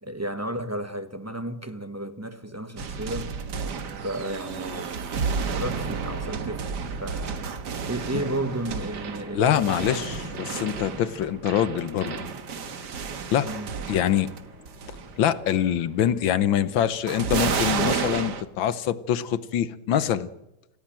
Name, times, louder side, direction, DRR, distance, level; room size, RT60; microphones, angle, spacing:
voice 1, 0.0-3.4 3.9-5.0 5.5-7.4 7.9-10.2 13.4-13.7, right 1 dB, 10° right, 0.8 m, -33 dB
sound 1, 2.8-14.4 14.7-15.1 17.1-18.4, right 5 dB, 60° right, 2.0 m, -31 dB
sound 2, 3.4-18.2, equal, 35° right, 7.5 m, -47 dB
voice 2, 9.3-12.3 13.3-13.5 13.9-14.3 15.2-20.3, left 10 dB, 80° left, 1.7 m, -24 dB
26.5 x 16.5 x 7.7 m
omnidirectional pair, 2.1 m